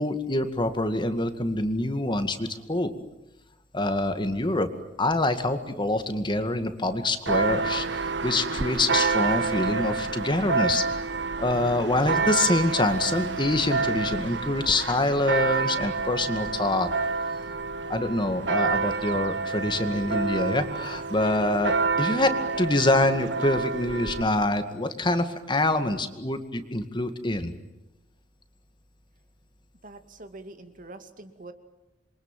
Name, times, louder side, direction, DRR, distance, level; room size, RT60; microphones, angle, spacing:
voice 1, 0.0-2.9 3.7-4.7 5.0-11.0 11.4-16.9 17.9-27.5, left 2 dB, 25° left, 9 dB, 2.1 m, -26 dB
Church bell, 7.3-24.2, right 4 dB, 80° right, 1.3 m, -28 dB
voice 2, 29.8-31.5, right 2 dB, 50° right, 8 dB, 2.4 m, -44 dB
28.0 x 23.5 x 9.2 m, 0.93 s
head